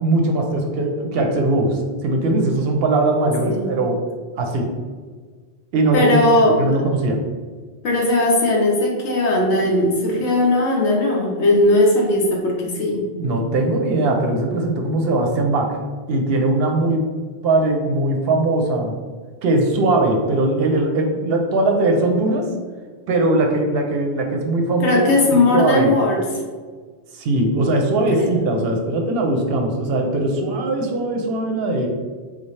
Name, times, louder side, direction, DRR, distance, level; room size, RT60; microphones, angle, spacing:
voice 1, 0.0-4.0 4.4-4.7 5.7-6.2 6.6-7.2 13.2-15.8 16.1-17.0 17.4-19.0 19.4-22.5 23.1-25.0 25.3-25.9 27.1-31.9, right 2 dB, 65° right, 3 dB, 0.8 m, -20 dB
voice 2, 5.9-6.6 7.8-13.1 24.8-26.2 28.1-28.3, left 2 dB, 85° left, -1 dB, 1.1 m, -18 dB
3.8 x 2.7 x 3.1 m, 1.5 s
omnidirectional pair, 1.1 m